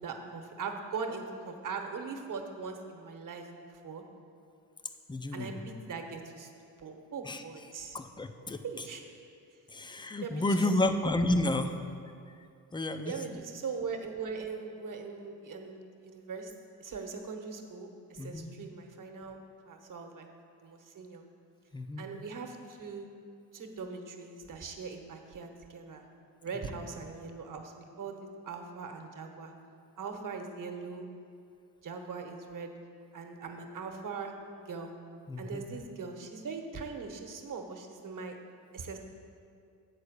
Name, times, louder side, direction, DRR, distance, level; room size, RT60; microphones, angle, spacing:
voice 1, 0.0-3.5 3.8-4.0 5.3-6.5 6.8-8.0 8.6-9.0 10.2-10.9 13.0-16.5 16.8-19.4 19.7-20.3 20.6-21.2 22.0-23.1 23.5-26.0 26.4-28.2 28.4-29.5 30.0-31.1 31.8-32.7 33.1-34.9 35.4-38.4 38.7-39.0, right 5 dB, 45° right, 4 dB, 1.1 m, -40 dB
voice 2, 5.1-5.6 7.2-7.4 7.9-8.6 9.7-11.8 12.7-13.4 18.2-18.5 21.7-22.1 35.3-35.7, left 1 dB, 10° left, 8 dB, 0.5 m, -31 dB
8.3 x 4.4 x 6.5 m, 2.4 s
supercardioid pair, 65°, 45 cm